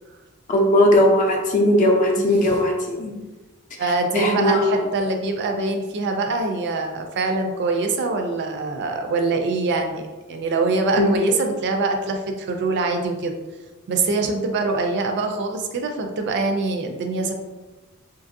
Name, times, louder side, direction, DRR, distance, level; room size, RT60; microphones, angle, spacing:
voice 1, 0.5-3.1 4.1-4.8 11.0-11.1, left 1 dB, 35° left, 0 dB, 0.5 m, -18 dB
voice 2, 2.1-2.5 3.8-13.3 13.9-17.3, right 3 dB, 50° right, 4 dB, 0.3 m, -24 dB
2.8 x 2.5 x 2.6 m, 1.2 s
head